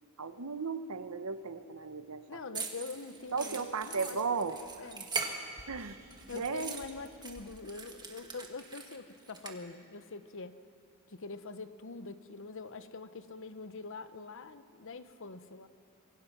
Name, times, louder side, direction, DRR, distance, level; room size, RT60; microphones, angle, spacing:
voice 1, 0.2-2.4 3.3-4.9 5.7-6.0 6.3-6.8, right 5 dB, 90° right, 11 dB, 1.0 m, -36 dB
voice 2, 2.3-4.2 4.8-5.1 6.3-10.6 11.1-15.7, left 4 dB, 60° left, 12 dB, 0.9 m, -44 dB
sound 1, 2.5-5.8 6.1-9.5, right 4 dB, 20° right, 1.8 m, -41 dB
sound 2, 3.2-8.4, right 1 dB, 60° right, 3.0 m, -60 dB
26.0 x 22.5 x 6.0 m, 2.5 s
head